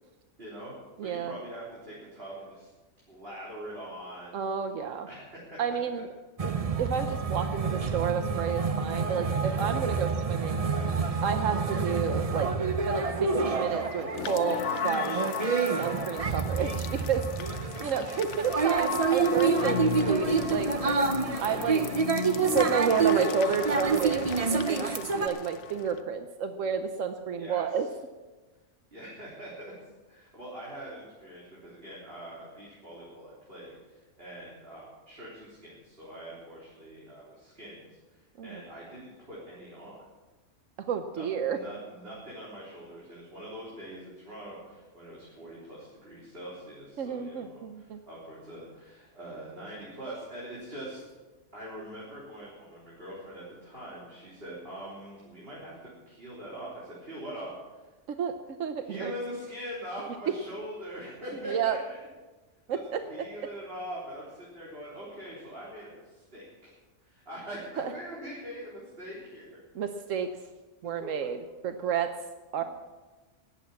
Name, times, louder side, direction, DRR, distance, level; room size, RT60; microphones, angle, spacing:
voice 1, 0.4-0.8 1.0-2.7 3.1-4.4 5.1-5.5 15.6-16.0 27.3-27.8 28.9-29.7 30.1-40.0 41.2-51.0 51.5-55.8 56.1-57.9 58.8-62.0 62.7-62.8 63.1-66.7 67.0-69.6 71.0-71.3, equal, 50° right, -8 dB, 4.1 m, -43 dB
voice 2, 1.0-1.4 4.3-5.1 5.6-6.1 6.4-6.5 6.8-10.7 11.2-15.3 15.8-17.3 17.8-20.7 21.4-21.8 22.5-27.9 38.4-38.6 40.8-41.6 47.0-48.0 58.1-59.1 61.4-61.8 62.7-63.3 67.8-67.9 69.7-70.4 70.8-72.1 72.5-72.6, right 7 dB, 85° right, 8 dB, 1.2 m, -31 dB
sound 1, 6.4-25.3, right 5 dB, 35° right, 0.8 m, -28 dB
sound 2, 13.5-15.1 15.9-16.0, left 1 dB, 50° left, 3.9 m, -51 dB
sound 3, 14.1-26.0, left 9 dB, 70° left, 1.1 m, -35 dB
19.0 x 8.5 x 7.1 m, 1.2 s
omnidirectional pair, 1.3 m